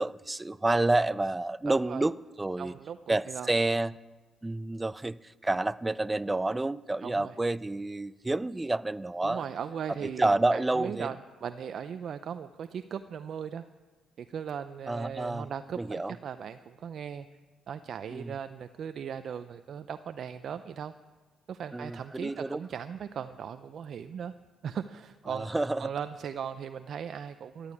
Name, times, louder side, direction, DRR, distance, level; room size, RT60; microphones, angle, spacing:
voice 1, 0.0-2.7 3.1-3.9 4.4-9.5 10.0-11.1 14.9-15.5 15.8-16.1 18.1-18.3 21.7-22.6 25.3-25.9, right 2 dB, 15° right, 0.5 m, -29 dB
voice 2, 1.7-2.0 2.6-3.5 7.0-7.4 9.2-13.7 14.2-17.3 17.7-20.9 21.5-24.3 24.6-25.5 25.8-27.7, right 7 dB, 60° right, 0.6 m, -38 dB
14.0 x 11.5 x 8.5 m
cardioid pair, 90°, 0 cm